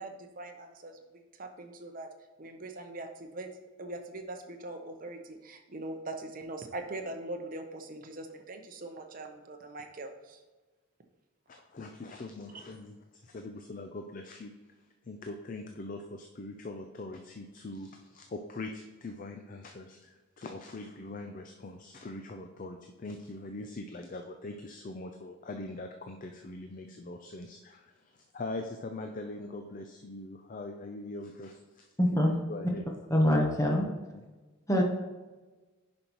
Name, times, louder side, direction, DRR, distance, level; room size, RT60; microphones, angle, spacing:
voice 1, 0.0-2.1 2.4-3.5 3.8-10.4, right 2 dB, 40° right, 5 dB, 0.7 m, -42 dB
voice 2, 11.5-14.5 15.1-31.9 32.3-32.8 34.1-34.2, left 2 dB, 40° left, 4 dB, 0.4 m, -42 dB
voice 3, 32.0-32.3 33.1-33.9 34.7-34.8, equal, 15° left, 0 dB, 0.8 m, -24 dB
10.0 x 5.3 x 3.0 m, 1.2 s
head